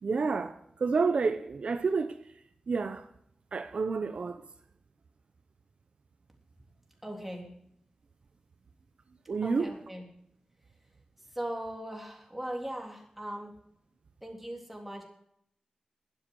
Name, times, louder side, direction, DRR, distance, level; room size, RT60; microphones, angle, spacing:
voice 1, 0.0-2.2 2.7-3.1 3.5-4.4 9.3-9.7, right 4 dB, 65° right, 0.8 m, -29 dB
voice 2, 7.0-7.5 9.4-10.0 11.3-13.5 14.2-15.0, right 1 dB, 5° right, 3.4 m, -39 dB
21.0 x 7.7 x 4.7 m
wide cardioid pair, 105°, 2 cm